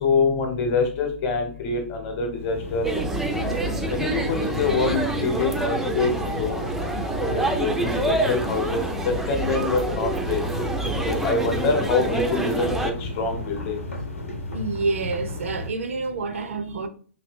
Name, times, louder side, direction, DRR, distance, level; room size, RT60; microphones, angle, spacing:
voice 1, 0.0-2.8 3.4-3.5 3.9-6.1 6.4-6.6 7.3-10.4 11.0-12.7 13.2-13.8, left 4 dB, 35° left, 0.9 m, -25 dB
sound 1, 2.3-15.7, left 2 dB, 85° left, 0.8 m, -34 dB
sound 2, 2.8-12.9, right 2 dB, 5° right, 0.3 m, -27 dB
voice 2, 14.5-16.9, right 3 dB, 70° right, 0.4 m, -28 dB
2.7 x 2.3 x 3.5 m
hypercardioid pair, 125°, 7 cm